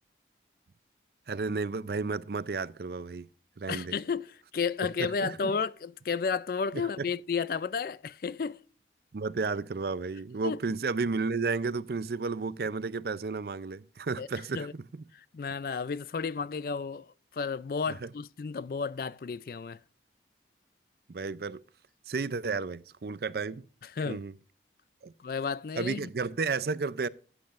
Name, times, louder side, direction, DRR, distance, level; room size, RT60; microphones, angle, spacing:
voice 1, 1.3-3.3 3.6-3.9 5.0-5.5 6.7-7.0 9.1-15.0 17.9-18.1 21.1-21.6 22.1-23.6 24.0-24.3 25.0-25.1 25.8-27.1, right 4 dB, 60° right, 0.5 m, -32 dB
voice 2, 3.7-8.6 10.4-10.6 14.2-14.3 14.5-14.7 15.3-19.8 24.0-24.2 25.2-26.1, left 5 dB, 50° left, 0.4 m, -32 dB
15.0 x 8.8 x 2.5 m
head